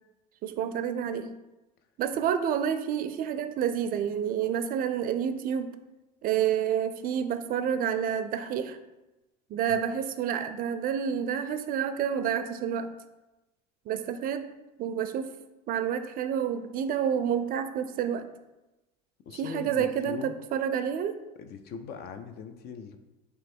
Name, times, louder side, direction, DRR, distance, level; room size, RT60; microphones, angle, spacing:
voice 1, 0.4-1.3 2.0-5.8 6.2-8.8 9.5-12.9 13.9-14.5 14.8-15.3 15.7-18.3 19.3-21.2, right 8 dB, 45° right, 10 dB, 0.4 m, -29 dB
voice 2, 19.3-20.4 21.4-23.0, left 6 dB, 50° left, 8 dB, 0.5 m, -41 dB
3.4 x 3.0 x 4.3 m, 1.0 s
hypercardioid pair, 80°, 20 cm